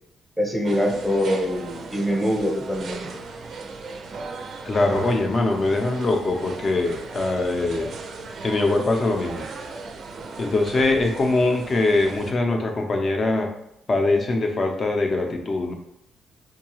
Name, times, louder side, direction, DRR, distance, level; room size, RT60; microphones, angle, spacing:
voice 1, 0.4-3.1, equal, ahead, 1 dB, 0.8 m, -24 dB
sound 1, 0.6-12.3, right 4 dB, 60° right, 0.4 m, -37 dB
voice 2, 4.6-7.9 8.4-9.4 10.4-13.5 13.9-15.7, left 2 dB, 40° left, 3 dB, 0.6 m, -22 dB
4.6 x 2.3 x 3.0 m, 0.81 s
cardioid pair, 90°, 0 cm